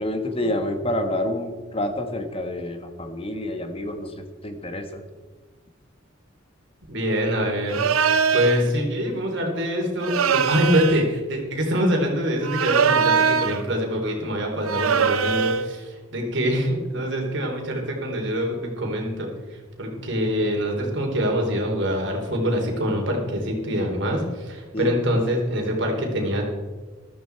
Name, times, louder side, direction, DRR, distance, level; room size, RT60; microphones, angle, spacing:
voice 1, 0.0-4.1 4.4-5.0 24.7-24.9, left 1 dB, 25° left, 6 dB, 1.3 m, -28 dB
voice 2, 6.9-7.8 8.3-26.4, equal, 60° right, 1 dB, 3.4 m, -25 dB
sound 1, 7.7-8.6 10.0-11.1 12.4-13.7 14.6-15.7, right 6 dB, 85° right, 0.8 m, -21 dB
14.0 x 13.5 x 4.6 m, 1.3 s
head